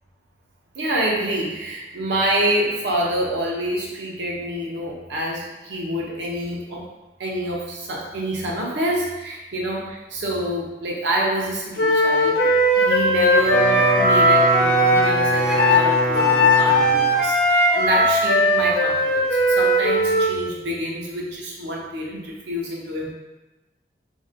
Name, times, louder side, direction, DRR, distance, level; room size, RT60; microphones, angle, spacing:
voice 1, 0.7-6.9 7.2-23.1, right 1 dB, 85° right, -3 dB, 0.6 m, -27 dB
Wind instrument woodwind instrument, 11.8-20.3, equal, 60° left, 0.4 m, -18 dB
Wind instrument woodwind instrument 2, 13.3-17.2, right 1 dB, 5° right, 0.4 m, -24 dB
2.5 x 2.1 x 2.5 m, 1.1 s
head